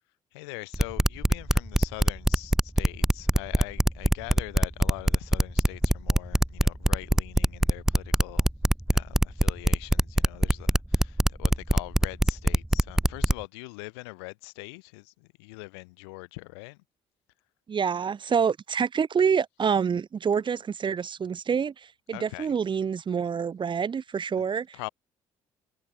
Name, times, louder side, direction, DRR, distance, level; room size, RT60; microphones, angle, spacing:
voice 1, 0.3-8.5 8.9-16.8 22.1-22.5 24.4-24.5 24.7-24.9, left 28 dB, 85° left, 2.7 m, -42 dB
sound 1, 0.7-13.4, right 1 dB, 5° right, 1.1 m, -22 dB
voice 2, 17.7-24.9, right 6 dB, 35° right, 0.7 m, -27 dB
hypercardioid pair, 55°, 14 cm